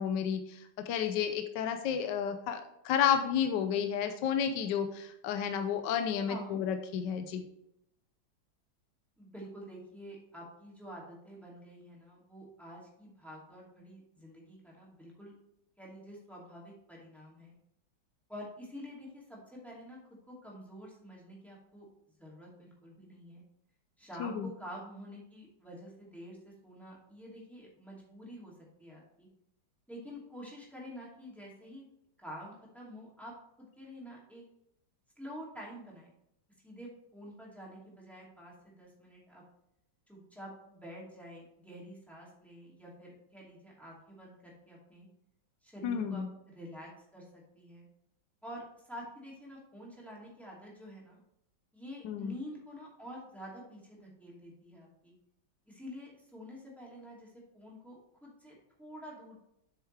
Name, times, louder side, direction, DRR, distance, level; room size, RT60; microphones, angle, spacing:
voice 1, 0.0-7.5 24.2-24.5 45.8-46.3 52.0-52.4, left 8 dB, 75° left, 7 dB, 1.2 m, -31 dB
voice 2, 6.3-6.6 9.2-15.3 15.8-17.5 18.3-20.0 20.3-21.9 22.2-23.4 24.0-28.5 28.8-29.3 29.9-31.9 32.2-33.3 33.6-34.4 35.2-36.1 36.6-39.4 40.1-45.1 45.6-47.9 48.4-51.2 51.7-55.1 55.7-59.4, equal, ahead, -5 dB, 2.4 m, -48 dB
8.3 x 6.4 x 3.3 m, 0.80 s
omnidirectional pair, 2.1 m